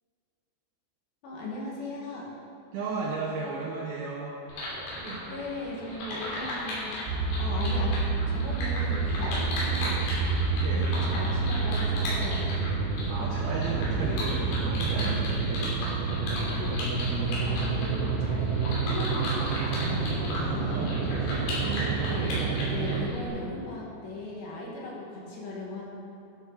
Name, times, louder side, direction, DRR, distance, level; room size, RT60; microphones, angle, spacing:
voice 1, 1.2-2.3 5.3-6.9 7.4-10.1 10.8-12.5 13.0-13.1 13.8-14.3 14.9-15.2 16.1-16.7 17.0-21.2 22.1-25.8, left 2 dB, 65° left, -4 dB, 3.9 m, -38 dB
voice 2, 2.7-4.4 5.0-5.3 10.5-10.9 13.1-16.0 16.6-16.8 20.4-22.1, right 4 dB, 70° right, -5 dB, 2.4 m, -35 dB
sound 1, 4.5-23.3, left 1 dB, 85° left, 5.5 m, -36 dB
sound 2, 7.1-23.1, right 4 dB, 90° right, 3.2 m, -28 dB
12.5 x 11.0 x 4.1 m, 2.7 s
omnidirectional pair, 5.6 m